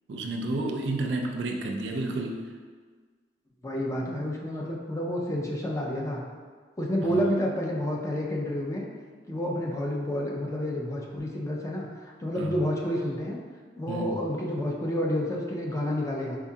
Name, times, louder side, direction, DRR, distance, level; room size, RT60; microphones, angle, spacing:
voice 1, 0.1-2.4 7.0-7.3 12.4-12.5 13.9-14.1, right 2 dB, 80° right, 3 dB, 0.4 m, -31 dB
voice 2, 3.6-6.2 6.8-8.9 9.3-13.4 13.8-16.4, equal, 20° left, -1 dB, 0.4 m, -29 dB
4.5 x 2.3 x 2.7 m, 1.5 s
head